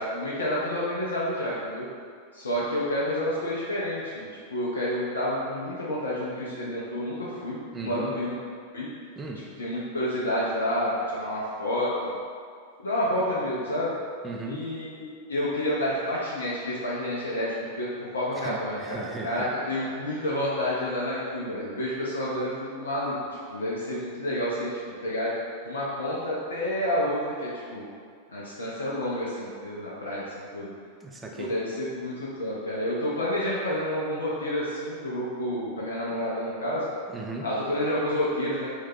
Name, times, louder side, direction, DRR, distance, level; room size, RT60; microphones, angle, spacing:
voice 1, 0.0-1.9 2.3-8.3 8.7-8.9 9.6-11.9 12.8-13.9 14.5-23.2 23.5-24.7 25.0-25.4 25.7-27.8 28.3-30.2 30.5-30.7 31.4-36.9 37.4-38.7, left 1 dB, 70° left, -6 dB, 0.4 m, -29 dB
voice 2, 7.7-8.2 9.2-9.5 14.2-14.7 18.3-19.5 31.0-31.5 37.1-37.5, right 3 dB, 15° right, 0 dB, 0.4 m, -37 dB
2.6 x 2.3 x 3.7 m, 2.2 s
figure-of-eight pair, 90°, 0 cm